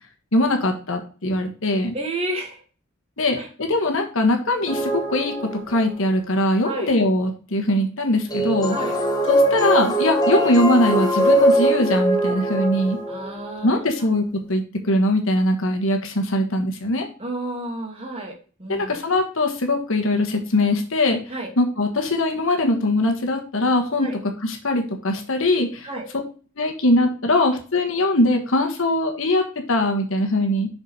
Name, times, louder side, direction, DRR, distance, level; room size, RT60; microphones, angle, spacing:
voice 1, 0.3-1.9 3.2-8.8 9.3-13.0 13.6-17.1 18.7-21.2 21.6-24.1 24.4-25.9 26.6-30.7, left 1 dB, 70° left, 4 dB, 1.4 m, -21 dB
voice 2, 1.9-2.6 3.2-3.5 6.6-6.9 8.7-9.0 13.1-13.9 17.2-19.0 21.3-21.5 24.0-24.2 25.8-26.1, right 1 dB, 30° right, 2 dB, 2.2 m, -31 dB
sound 1, 4.7-6.0 8.3-13.6, right 1 dB, 20° left, 1.2 m, -21 dB
6.0 x 5.4 x 4.8 m, 0.37 s
head